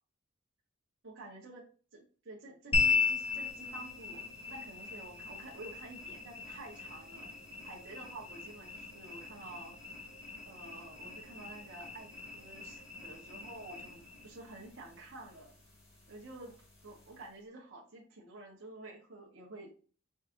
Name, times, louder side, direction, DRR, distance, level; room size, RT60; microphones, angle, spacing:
voice 1, 1.0-1.6 1.9-7.3 7.6-9.7 10.5-15.5 16.1-16.6 16.8-19.7, right 2 dB, 65° right, -4 dB, 1.0 m, -50 dB
sound 1, 2.7-17.3, left 5 dB, 30° left, 1.6 m, -38 dB
4.7 x 4.2 x 2.5 m, 0.38 s
head